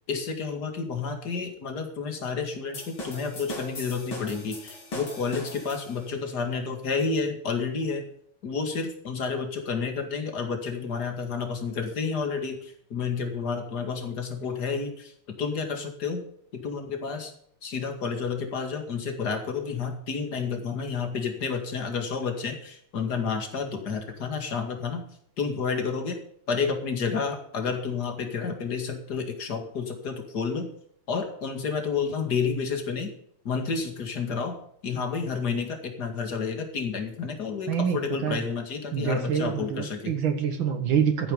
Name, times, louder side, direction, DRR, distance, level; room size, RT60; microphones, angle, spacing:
voice 1, 0.1-8.1 8.4-16.2 16.5-17.3 17.6-25.0 25.4-26.2 26.5-30.7 31.1-33.1 33.4-34.6 34.8-40.2, left 5 dB, 50° left, 5 dB, 2.6 m, -30 dB
sound 1, 2.7-6.2, left 1 dB, 70° left, 4.2 m, -39 dB
voice 2, 37.7-38.4 38.9-41.3, right 7 dB, 70° right, 5 dB, 2.1 m, -26 dB
14.5 x 9.2 x 5.1 m, 0.68 s
omnidirectional pair, 2.3 m